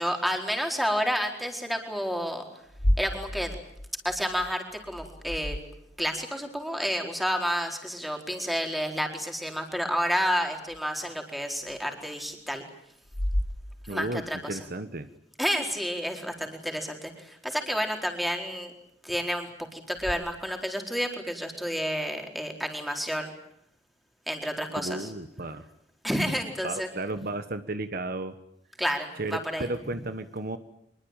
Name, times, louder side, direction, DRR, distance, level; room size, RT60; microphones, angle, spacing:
voice 1, 0.0-2.5 3.0-3.6 4.0-5.6 6.0-12.6 13.9-14.6 15.4-18.7 19.0-23.3 24.3-25.1 26.0-26.9 28.8-29.7, equal, ahead, 3 dB, 4.4 m, -30 dB
sound 1, 2.7-6.2 10.7-10.8 11.7-11.8 13.0-14.3 20.0-20.1, equal, 60° left, 2.1 m, -32 dB
voice 2, 13.9-15.1 24.8-25.6 26.6-28.3 29.2-30.6, right 2 dB, 55° right, 10 dB, 1.4 m, -33 dB
25.5 x 22.5 x 9.1 m, 0.73 s
head